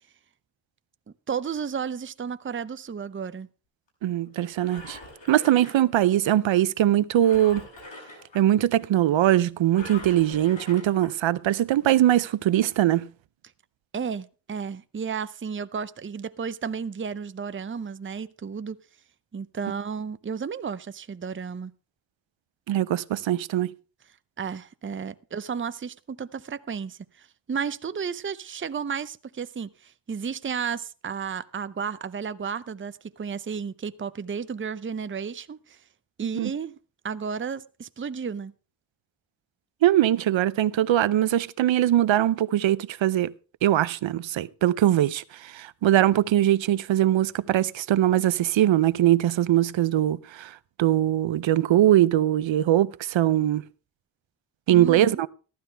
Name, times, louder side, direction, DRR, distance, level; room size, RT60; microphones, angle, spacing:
voice 1, 1.3-3.5 13.9-18.8 19.3-21.7 24.4-35.8 36.2-36.8 37.0-38.5 54.7-55.2, right 6 dB, 25° right, 0.6 m, -33 dB
voice 2, 4.0-5.0 5.3-7.6 8.3-13.1 22.7-23.7 36.4-36.5 39.8-43.3 43.6-50.5 50.8-53.6 54.7-55.3, right 12 dB, 90° right, 0.6 m, -21 dB
Engine, 4.4-6.3 7.2-8.4 9.7-11.1 11.8-11.9, left 2 dB, 75° left, 6.9 m, -43 dB
15.0 x 12.0 x 3.4 m
cardioid pair, 60°, 44 cm